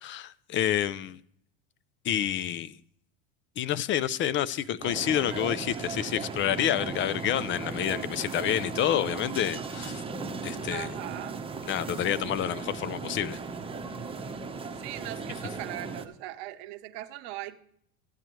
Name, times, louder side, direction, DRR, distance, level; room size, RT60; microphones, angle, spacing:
voice 1, 0.0-1.2 2.0-2.8 3.6-10.0 10.4-11.0 11.7-13.4, left 11 dB, 35° left, 18 dB, 0.4 m, -28 dB
sound 1, 4.8-16.0, right 4 dB, 15° right, 0.9 m, -37 dB
voice 2, 10.7-11.4 14.7-17.6, right 15 dB, 65° right, 9 dB, 0.8 m, -39 dB
14.5 x 8.9 x 3.1 m, 0.67 s
hypercardioid pair, 100°, 37 cm